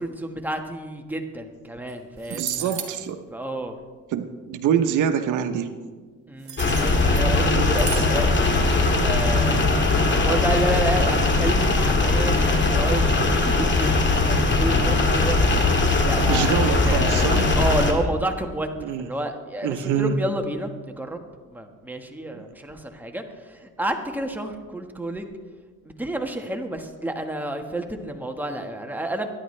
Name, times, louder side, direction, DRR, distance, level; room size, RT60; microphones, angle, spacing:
voice 1, 0.0-2.9 3.3-3.7 6.3-8.4 9.0-9.6 10.0-16.6 16.8-18.7 19.0-21.2 21.5-25.3 25.8-29.3, right 1 dB, 5° right, 3 dB, 1.5 m, -30 dB
sound 1, 1.9-2.0 2.2-2.9 6.4-7.3 7.8-8.1, right 8 dB, 65° right, 2.0 m, -34 dB
voice 2, 2.3-3.2 4.1-5.7 7.5-7.7 16.3-17.5 18.8-19.1 19.6-20.2 22.3-22.4, right 8 dB, 85° right, 8 dB, 1.0 m, -25 dB
sound 2, 6.6-17.9, left 3 dB, 40° left, 2.2 m, -20 dB
23.0 x 10.0 x 3.3 m, 1.5 s
cardioid pair, 90°, 30 cm